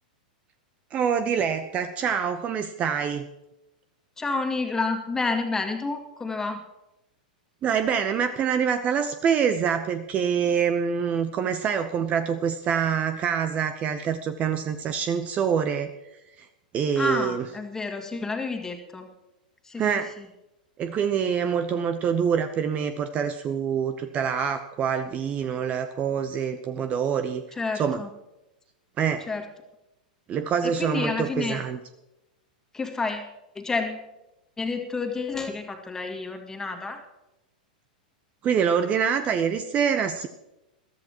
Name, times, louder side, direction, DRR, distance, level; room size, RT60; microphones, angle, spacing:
voice 1, 0.9-3.3 7.6-15.9 16.4-16.5 16.7-17.4 19.8-20.1 20.8-28.0 29.0-29.3 30.3-31.8 38.4-40.3, right 7 dB, 30° right, 10 dB, 0.9 m, -25 dB
voice 2, 4.2-6.6 17.0-19.1 19.6-19.9 20.2-20.3 27.6-28.1 29.3-29.4 30.6-31.6 32.7-33.3 33.6-34.1 34.6-37.0, left 3 dB, 10° left, 4 dB, 2.1 m, -29 dB
22.0 x 13.5 x 3.0 m, 0.95 s
figure-of-eight pair, 100°, 5 cm